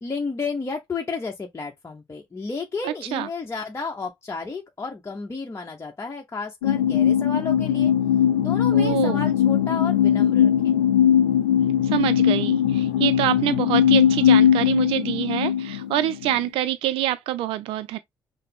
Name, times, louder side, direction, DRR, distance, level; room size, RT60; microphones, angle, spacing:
voice 1, 0.0-7.9 8.4-10.8, left 4 dB, 30° left, 0.9 m, -32 dB
voice 2, 2.8-3.3 8.7-9.2 11.9-18.0, right 13 dB, 65° right, 0.3 m, -26 dB
sound 1, 6.6-16.4, left 9 dB, 85° left, 0.4 m, -20 dB
5.7 x 2.0 x 3.5 m
hypercardioid pair, 45°, 10 cm